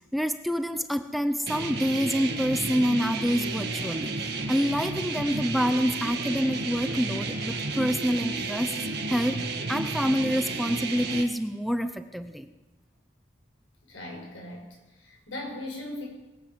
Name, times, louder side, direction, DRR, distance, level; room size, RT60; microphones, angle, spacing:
voice 1, 0.1-4.2 4.5-8.8 9.1-9.4 9.7-12.5, equal, ahead, 9 dB, 0.6 m, -27 dB
sound 1, 1.5-11.2, right 3 dB, 60° right, 1.7 m, -32 dB
voice 2, 13.9-14.7 15.0-16.1, left 1 dB, 90° left, -1 dB, 6.1 m, -38 dB
21.5 x 8.2 x 7.5 m, 1.1 s
head